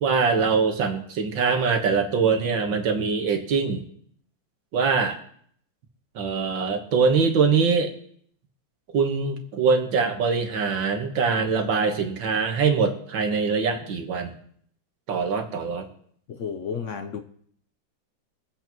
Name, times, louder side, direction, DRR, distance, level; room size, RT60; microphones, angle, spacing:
voice 1, 0.0-3.8 4.7-5.2 6.2-7.9 8.9-14.3 15.1-15.9, right 5 dB, 80° right, 5 dB, 2.1 m, -23 dB
voice 2, 16.3-17.2, left 6 dB, 65° left, 7 dB, 0.7 m, -32 dB
24.0 x 8.2 x 3.0 m, 0.63 s
omnidirectional pair, 2.1 m